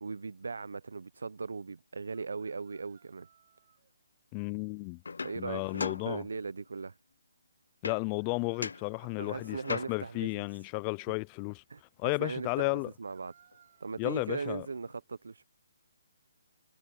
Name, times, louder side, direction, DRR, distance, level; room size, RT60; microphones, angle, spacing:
voice 1, 0.0-3.3 5.2-7.0 9.2-10.4 11.7-11.8 12.2-13.3 13.8-15.4, right 4 dB, 85° right, 0.7 m, -39 dB
sound 1, 2.1-3.9 7.9-9.7 12.8-14.4, right 8 dB, 40° right, 5.4 m, -65 dB
voice 2, 4.3-5.0 5.4-6.3 7.8-11.6 12.0-12.9 14.0-14.7, left 32 dB, 20° left, 0.3 m, -33 dB
sound 2, 5.0-6.7 7.8-8.3 8.6-10.3 13.5-13.6 13.9-14.9, left 4 dB, 85° left, 0.6 m, -41 dB
hypercardioid pair, 170°, 0 cm